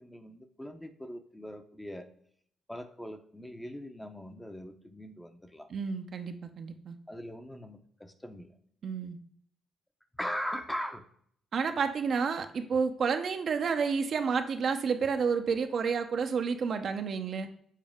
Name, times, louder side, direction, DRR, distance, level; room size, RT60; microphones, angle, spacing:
voice 1, 0.0-2.1 2.7-5.7 7.1-8.5 10.2-11.1, equal, 10° left, 7 dB, 0.7 m, -40 dB
voice 2, 5.7-7.0 8.8-9.2 11.5-17.5, right 5 dB, 55° right, 7 dB, 0.7 m, -30 dB
7.4 x 4.2 x 3.6 m, 0.65 s
cardioid pair, 90°, 0 cm